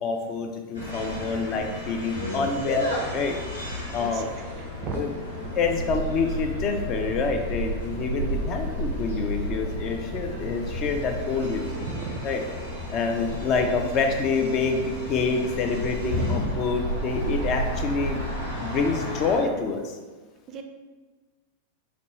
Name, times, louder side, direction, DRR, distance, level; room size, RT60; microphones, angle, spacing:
voice 1, 0.0-2.9 3.1-3.4 3.9-4.3 4.9-5.1 5.5-11.9 12.2-12.4 12.9-14.8 15.1-18.2 18.6-20.0, left 4 dB, 35° left, 4 dB, 0.5 m, -27 dB
sound 1, 0.7-19.4, equal, 85° left, 1.2 m, -32 dB
voice 2, 4.0-4.3 4.8-5.1 11.8-12.3 17.3-17.4 20.5-20.6, right 5 dB, 35° right, 6 dB, 0.4 m, -34 dB
4.2 x 3.0 x 3.1 m, 1.3 s
figure-of-eight pair, 90°, 0 cm